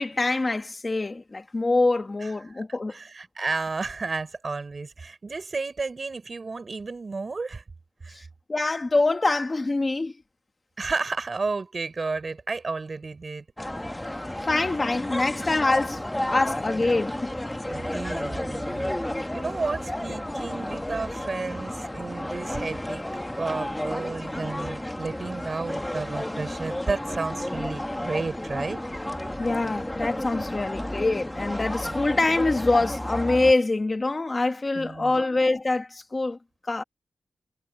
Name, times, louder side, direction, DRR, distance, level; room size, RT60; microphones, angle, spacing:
voice 1, 0.0-2.9 8.1-10.1 14.5-17.2 29.4-36.4 36.7-36.8, left 2 dB, 25° left, 1.2 m, -25 dB
voice 2, 2.6-7.6 8.0-8.3 10.8-13.5 17.7-19.0 19.3-23.1 23.4-28.8 31.8-32.0 34.7-35.2, right 4 dB, 35° right, 6.1 m, -32 dB
sound 1, 13.6-33.5, left 1 dB, 10° left, 1.3 m, -32 dB
wide cardioid pair, 175°, 0 cm